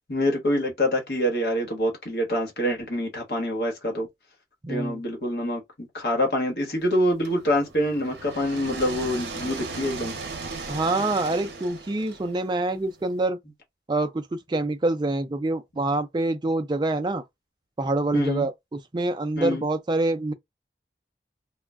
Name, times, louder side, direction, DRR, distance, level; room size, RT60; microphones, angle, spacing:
voice 1, 0.1-4.1 4.7-10.2 18.1-18.5 19.4-19.7, equal, 65° left, 1.1 m, -26 dB
voice 2, 4.6-5.0 10.7-13.4 13.9-17.2 17.8-20.3, right 2 dB, 25° right, 0.3 m, -26 dB
sound 1, 7.2-13.1, right 3 dB, 70° right, 0.7 m, -37 dB
2.2 x 2.1 x 3.4 m
head